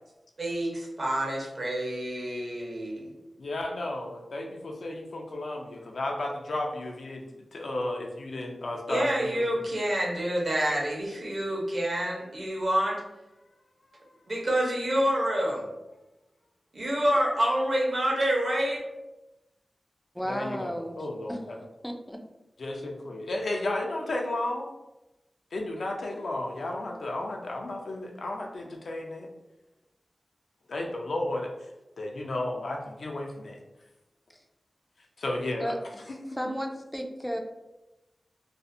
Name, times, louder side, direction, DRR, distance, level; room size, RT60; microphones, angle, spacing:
voice 1, 0.4-3.1 8.9-13.0 14.3-15.6 16.7-18.8, right 1 dB, 55° right, -2 dB, 0.7 m, -27 dB
voice 2, 3.4-7.2 7.5-9.6 20.3-21.6 22.6-24.7 25.5-29.3 30.7-31.5 32.0-33.6 35.2-35.7 36.1-36.4, left 2 dB, 80° left, 1 dB, 0.4 m, -33 dB
voice 3, 20.1-21.0 21.3-21.4 21.8-22.2 35.6-35.8 36.4-37.4, equal, ahead, 3 dB, 0.3 m, -33 dB
2.4 x 2.0 x 2.5 m, 0.99 s
wide cardioid pair, 75°, 0 cm